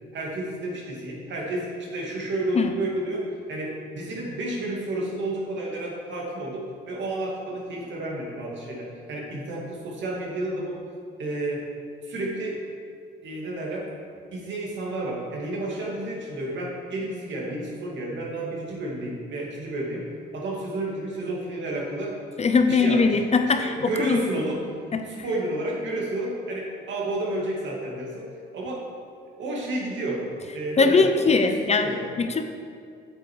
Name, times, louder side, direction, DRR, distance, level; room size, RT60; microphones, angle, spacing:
voice 1, 0.1-10.8 11.2-11.6 12.0-12.6 13.2-13.9 14.3-20.0 20.3-22.2 22.6-23.2 23.5-24.6 25.1-28.3 28.5-28.8 29.4-30.2 30.5-32.1, right 1 dB, 70° right, -3 dB, 2.5 m, -31 dB
voice 2, 22.4-24.2 24.9-25.1 30.8-31.9 32.2-32.4, left 4 dB, 35° left, 7 dB, 0.7 m, -21 dB
8.3 x 7.8 x 4.8 m, 2.3 s
cardioid pair, 90°, 20 cm